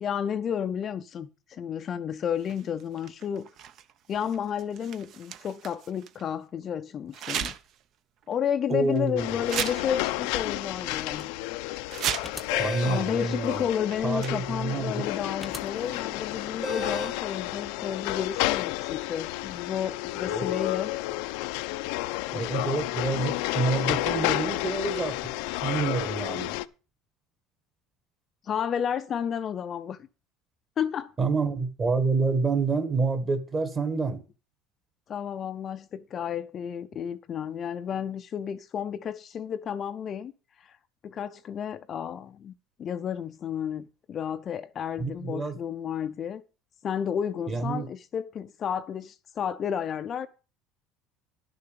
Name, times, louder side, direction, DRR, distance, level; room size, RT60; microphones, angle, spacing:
voice 1, 0.0-3.5 4.1-7.5 8.3-11.3 12.8-20.9 28.4-30.0 30.8-31.1 35.1-40.3 40.6-40.8 41.0-42.5 42.8-46.4 46.8-50.3, left 8 dB, 35° left, 0.5 m, -32 dB
sound 1, 2.4-6.3 7.1-7.8 8.2-8.3 9.0-9.1 9.4-10.5 10.8-11.3 11.7-12.6 13.5-13.6 13.9-14.7 15.7-16.3, right 9 dB, 45° right, 0.7 m, -36 dB
voice 2, 8.7-9.3 12.6-13.6 14.0-15.1 20.3-20.5 22.3-25.2 25.6-26.5 31.2-34.2 45.0-45.6 47.5-47.9, right 4 dB, 20° right, 1.5 m, -28 dB
sound 2, 9.2-26.6, left 18 dB, 80° left, 0.5 m, -31 dB
sound 3, 12.2-13.1 15.4-15.6 16.6-17.2, equal, ahead, 0.8 m, -34 dB
11.0 x 6.7 x 6.7 m
cardioid pair, 150°, 0 cm